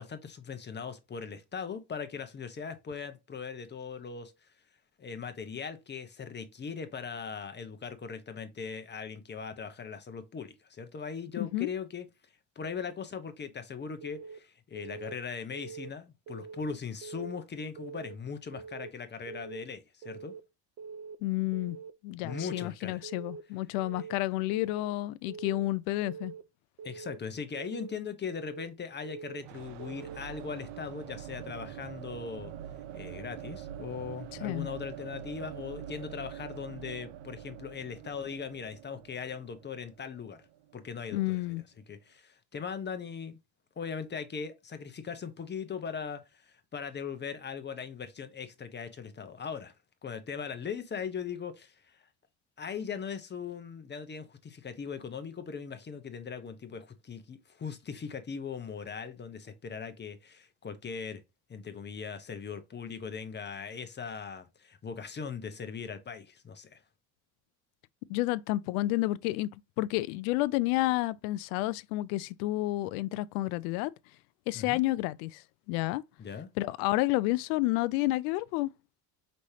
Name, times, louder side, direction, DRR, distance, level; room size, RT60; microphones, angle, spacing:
voice 1, 0.0-4.5 5.0-12.1 12.6-20.3 22.2-23.0 26.8-32.5 32.9-40.4 40.7-41.6 41.9-43.4 43.8-49.7 50.0-52.0 52.6-61.2 61.5-66.8 74.5-74.8 76.2-76.5, left 6 dB, 25° left, 0.8 m, -39 dB
voice 2, 11.4-11.7 21.2-21.8 22.0-26.3 34.4-34.7 41.1-41.6 68.1-73.9 74.5-76.0 76.6-78.7, left 18 dB, 90° left, 0.5 m, -30 dB
Keyboard (musical) / Alarm, 14.0-14.4 14.8-15.1 15.5-15.9 16.3-16.6 17.0-17.4 17.8-18.1 18.5-18.9 19.3-19.6 20.0-20.4 20.8-21.2 21.5-21.9 22.3-22.7 23.0-23.4 23.8-24.2 24.5-24.9 25.3-25.7 26.0-26.4 26.8-27.2 27.5-27.9 28.3-28.7 29.0-29.4 29.8-30.2, right 5 dB, 40° right, 0.6 m, -44 dB
sound 1, 29.4-41.2, right 11 dB, 75° right, 0.7 m, -45 dB
5.3 x 3.1 x 2.7 m
supercardioid pair, 110°, 42 cm